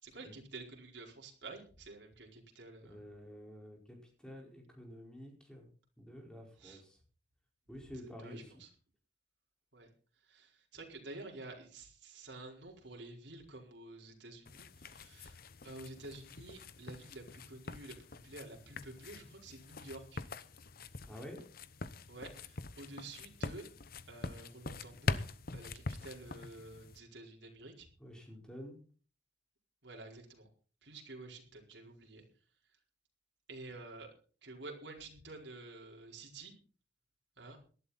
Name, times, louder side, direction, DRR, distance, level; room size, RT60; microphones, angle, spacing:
voice 1, 0.0-3.0 6.6-6.8 7.8-7.9 8.2-8.7 9.7-9.9 10.3-18.0 18.2-20.2 22.1-23.6 24.1-25.2 25.5-27.9 29.8-30.5 30.8-32.2 33.5-34.1 34.4-36.5 37.4-37.6, right 2 dB, 70° right, 0 dB, 4.7 m, -50 dB
voice 2, 2.9-4.0 4.2-5.7 6.0-7.0 7.7-8.6 21.0-21.4 28.0-28.8, equal, 5° left, 1 dB, 4.7 m, -49 dB
sound 1, 14.4-27.0, left 3 dB, 50° left, 0.9 m, -44 dB
18.5 x 12.0 x 4.2 m, 0.39 s
head